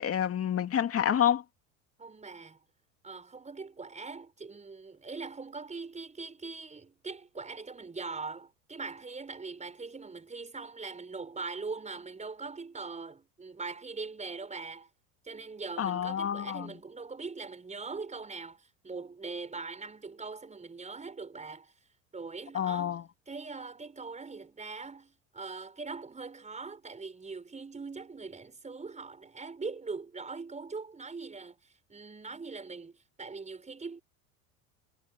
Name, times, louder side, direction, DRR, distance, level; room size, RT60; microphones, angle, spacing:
voice 1, 0.0-1.4 15.8-16.7 22.5-23.0, left 9 dB, 35° left, 2.6 m, -28 dB
voice 2, 2.0-2.6 3.0-14.9 15.2-21.7 22.1-31.6 31.9-34.0, right 4 dB, 15° right, 5.3 m, -41 dB
hypercardioid pair, 90°, 42 cm